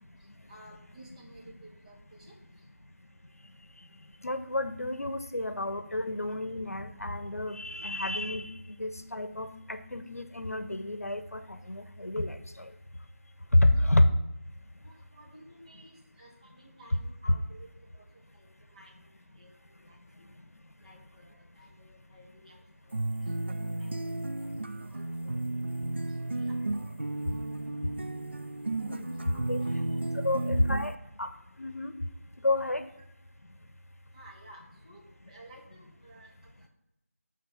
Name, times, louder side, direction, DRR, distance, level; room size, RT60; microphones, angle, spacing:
voice 1, 0.5-1.5 1.8-2.2 14.8-17.7 18.4-18.5 18.7-18.9 19.4-19.5 19.9-20.0 20.8-22.6 22.9-23.0 23.2-24.5 24.9-25.4 26.4-26.6 29.6-30.0 30.3-30.6 34.1-36.3, right 1 dB, 30° right, -3 dB, 1.7 m, -54 dB
voice 2, 4.2-12.4 13.5-14.1 28.9-29.0 29.5-29.6 30.2-30.9 31.2-31.3 31.6-31.9 32.4-32.8, left 1 dB, 70° left, 10 dB, 0.8 m, -29 dB
sound 1, 22.9-31.0, right 2 dB, 45° right, 0.3 m, -33 dB
9.8 x 4.0 x 5.5 m, 0.88 s
figure-of-eight pair, 165°, 8 cm